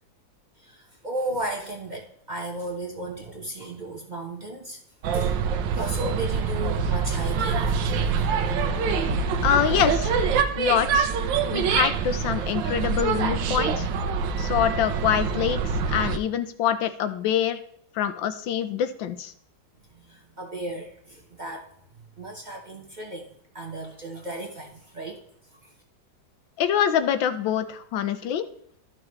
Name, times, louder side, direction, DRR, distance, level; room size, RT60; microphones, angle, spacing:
voice 1, 0.6-4.8 5.1-5.4 5.8-8.3 19.9-21.7 22.2-23.3 23.5-25.2, right 2 dB, 30° right, 0 dB, 1.0 m, -35 dB
sound 1, 5.0-16.2, right 5 dB, 80° right, 1.4 m, -25 dB
voice 2, 9.4-10.3 10.5-11.1 11.5-13.9 14.4-15.6 15.9-17.6 17.9-19.3 26.6-28.4, left 9 dB, 85° left, 11 dB, 1.5 m, -25 dB
12.5 x 6.1 x 3.1 m, 0.67 s
omnidirectional pair, 2.0 m